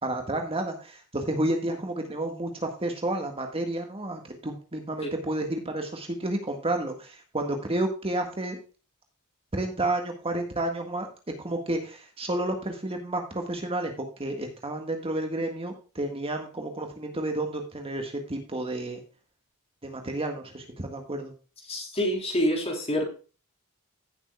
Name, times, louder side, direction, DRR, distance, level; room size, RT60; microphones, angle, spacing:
voice 1, 0.0-8.6 9.5-11.1 11.4-19.0 19.8-21.3, right 1 dB, 25° right, 4 dB, 1.7 m, -31 dB
voice 2, 21.7-23.1, equal, 30° left, 1 dB, 3.8 m, -26 dB
16.5 x 7.4 x 2.3 m, 0.35 s
head